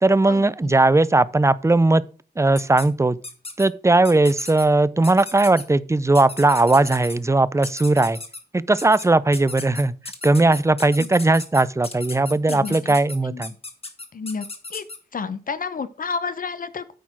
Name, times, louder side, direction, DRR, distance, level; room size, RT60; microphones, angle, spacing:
voice 1, 0.0-2.0 2.4-3.2 3.6-8.2 8.5-9.9 10.2-13.5, right 2 dB, 20° right, 0.5 m, -18 dB
sound 1, 2.5-2.9 3.2-3.7 4.0-4.6 5.0-5.6 6.1-7.2 7.6-8.4 8.8-9.1 9.3-15.0, left 3 dB, 35° left, 1.8 m, -35 dB
voice 2, 14.1-14.5 14.7-14.8 15.1-16.9, left 5 dB, 60° left, 0.7 m, -30 dB
9.3 x 4.4 x 6.0 m
cardioid pair, 65°, 16 cm